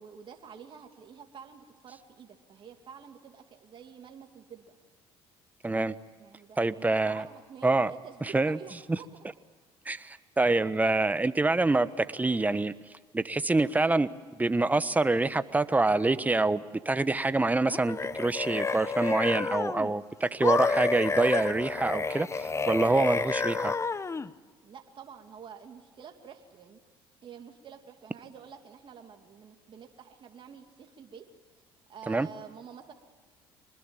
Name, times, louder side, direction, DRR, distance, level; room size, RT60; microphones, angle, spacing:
voice 1, 0.0-4.8 6.2-9.3 24.6-26.8 27.2-31.2 31.5-31.6 31.9-32.9, right 7 dB, 45° right, 3 dB, 2.6 m, -49 dB
voice 2, 5.6-5.9 6.6-7.2 7.6-7.9 8.3-8.6 8.9-9.0 9.9-12.7 13.1-14.1 14.4-23.7 32.1-32.3, right 2 dB, 15° right, 13 dB, 1.2 m, -26 dB
sound 1, 17.7-19.9 20.4-24.3, left 4 dB, 25° left, 1.1 m, -30 dB
25.5 x 20.5 x 9.0 m, 1.4 s
supercardioid pair, 75°, 11 cm